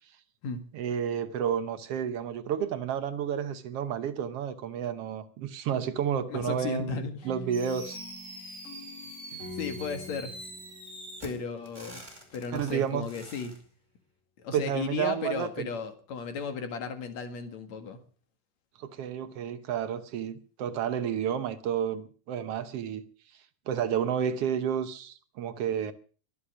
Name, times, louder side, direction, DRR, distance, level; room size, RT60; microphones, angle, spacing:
voice 1, 0.7-8.0 12.5-13.1 14.5-15.7 18.8-23.0 23.7-25.9, right 8 dB, 65° right, 1.6 m, -31 dB
voice 2, 6.3-7.3 9.3-10.4 11.2-12.0 12.3-13.6 14.4-18.0, left 5 dB, 60° left, 2.9 m, -35 dB
sound 1, 7.2-12.1, left 3 dB, 25° left, 2.6 m, -46 dB
Fireworks, 7.5-13.6, right 2 dB, 15° right, 4.3 m, -45 dB
23.0 x 8.5 x 6.2 m
omnidirectional pair, 3.6 m